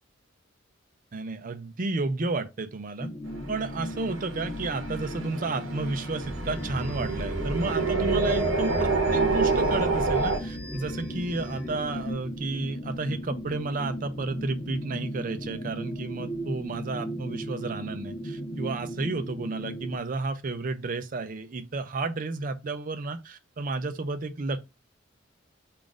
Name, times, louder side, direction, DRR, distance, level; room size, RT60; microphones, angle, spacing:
voice 1, 1.1-3.1 3.5-24.6, right 3 dB, 45° right, 0.5 m, -32 dB
sound 1, 3.0-20.0, equal, 30° left, 0.5 m, -37 dB
sound 2, 3.3-10.4, right 3 dB, 75° right, 0.8 m, -28 dB
sound 3, 6.2-12.1, equal, 5° right, 0.8 m, -37 dB
3.7 x 2.5 x 3.6 m
head